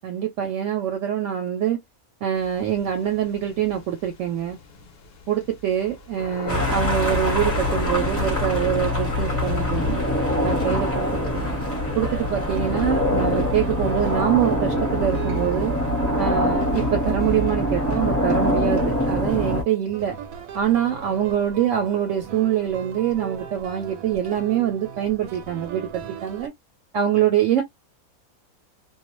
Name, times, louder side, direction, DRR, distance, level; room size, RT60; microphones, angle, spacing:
voice 1, 0.0-1.8 2.2-4.6 5.3-10.0 10.4-11.5 12.0-15.7 16.2-20.2 20.5-26.5 26.9-27.6, right 10 dB, 65° right, 0.8 m, -24 dB
sound 1, 2.3-8.8, left 5 dB, 55° left, 0.7 m, -38 dB
sound 2, 6.5-19.6, left 1 dB, 10° left, 0.8 m, -24 dB
sound 3, 10.9-26.5, right 7 dB, 90° right, 1.1 m, -39 dB
2.4 x 2.1 x 2.9 m
omnidirectional pair, 1.6 m